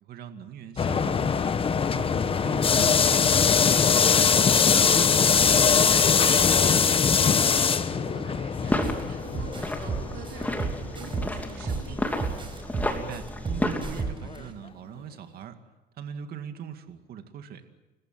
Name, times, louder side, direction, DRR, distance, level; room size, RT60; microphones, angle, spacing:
voice 1, 0.0-1.5 1.9-3.8 12.9-15.6 16.0-17.7, right 8 dB, 65° right, 7 dB, 2.2 m, -41 dB
sound 1, 0.8-11.7 12.0-12.1 12.8-12.9 14.4-14.5, left 6 dB, 35° left, 1.1 m, -22 dB
voice 2, 5.0-12.3, right 5 dB, 85° right, -1 dB, 5.2 m, -45 dB
sound 2, 8.5-14.0, left 1 dB, 10° left, 2.9 m, -32 dB
sound 3, 8.8-9.0 9.3-11.9 12.2-14.4, right 5 dB, 30° right, 4.7 m, -31 dB
30.0 x 15.0 x 7.6 m, 1.1 s
cardioid pair, 110°, 17 cm